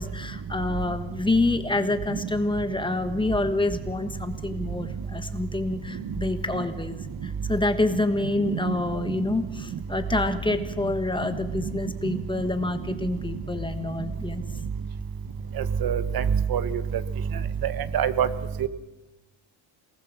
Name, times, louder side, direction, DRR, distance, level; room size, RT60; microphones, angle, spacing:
voice 1, 0.0-14.4, left 2 dB, 10° left, 8 dB, 1.3 m, -27 dB
voice 2, 15.8-16.2 16.5-16.6 17.6-18.3 18.6-18.7, right 9 dB, 50° right, 13 dB, 1.3 m, -25 dB
26.5 x 19.0 x 7.4 m, 1.1 s
cardioid pair, 155°, 47 cm